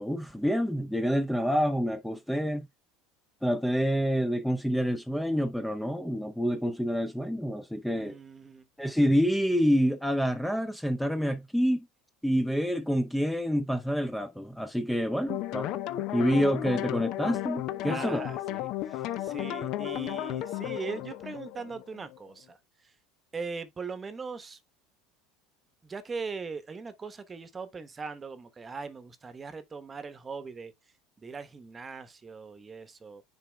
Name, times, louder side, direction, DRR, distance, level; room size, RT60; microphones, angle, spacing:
voice 1, 0.0-2.7 3.4-8.1 8.8-11.9 12.2-15.7 16.1-18.2, equal, ahead, 0.7 m, -27 dB
voice 2, 7.9-8.7 17.8-22.6 22.8-22.9 23.3-24.6 25.8-30.7 31.2-33.2, right 4 dB, 25° right, 1.1 m, -40 dB
sound 1, 15.3-22.3, left 14 dB, 55° left, 0.6 m, -34 dB
10.0 x 4.4 x 2.3 m
hypercardioid pair, 80°, 0 cm